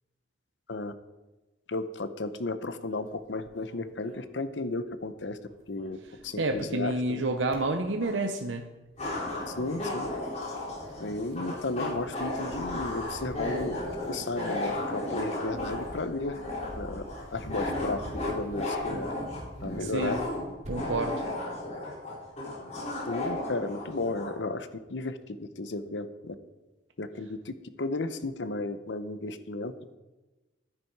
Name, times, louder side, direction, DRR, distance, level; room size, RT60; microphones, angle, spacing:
voice 1, 1.7-5.4 5.7-6.0 6.2-7.2 9.5-10.1 11.0-13.8 14.1-16.4 16.8-17.0 17.3-19.1 19.6-20.2 23.0-26.4 27.0-29.7, left 2 dB, 75° left, 12 dB, 0.8 m, -34 dB
sound 1, 2.9-5.0 5.3-6.9 7.3-8.3 8.8-21.1, equal, 40° right, 2.5 m, -49 dB
voice 2, 6.4-8.7 19.8-20.2 20.7-21.2, right 2 dB, 85° right, 5 dB, 0.9 m, -29 dB
sound 2, 8.0-8.1 9.0-24.4, left 1 dB, 40° left, 4.5 m, -34 dB
12.0 x 10.0 x 4.7 m, 1.1 s
head